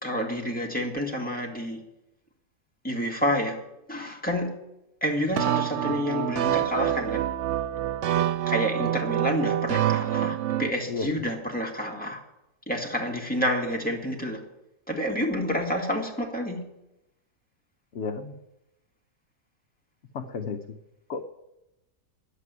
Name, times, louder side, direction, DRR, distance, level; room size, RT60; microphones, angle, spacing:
voice 1, 0.0-1.8 2.8-3.6 3.9-4.5 5.0-7.2 8.5-12.2 12.7-14.4 14.9-16.6, equal, 5° left, -1 dB, 1.9 m, -29 dB
sound 1, 5.4-10.7, right 11 dB, 75° right, 0.7 m, -26 dB
voice 2, 5.7-6.1 10.9-11.2 17.9-18.4 20.1-20.8 21.1-21.2, left 5 dB, 55° left, 5 dB, 0.9 m, -33 dB
11.0 x 8.4 x 9.5 m, 0.90 s
omnidirectional pair, 1.9 m